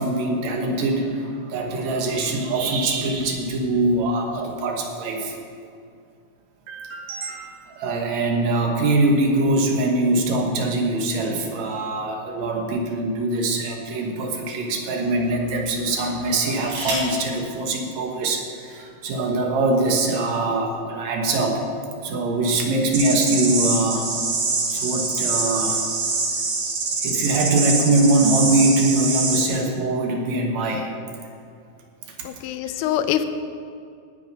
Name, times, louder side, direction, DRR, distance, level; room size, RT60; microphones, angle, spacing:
voice 1, 0.0-5.3 6.7-21.6 22.0-24.1 24.7-25.9 27.0-30.9 32.2-32.3, right 2 dB, 65° right, 2 dB, 2.5 m, -23 dB
sound 1, 12.5-13.7 14.4-14.6 16.2-17.2 18.4-18.5 18.8-19.2, right 2 dB, 85° right, 4.3 m, -33 dB
sound 2, 22.9-29.5, right 4 dB, 50° right, 1.7 m, -24 dB
voice 2, 32.3-33.2, left 11 dB, 80° left, 10 dB, 2.2 m, -24 dB
17.5 x 6.4 x 5.5 m, 2.4 s
omnidirectional pair, 3.7 m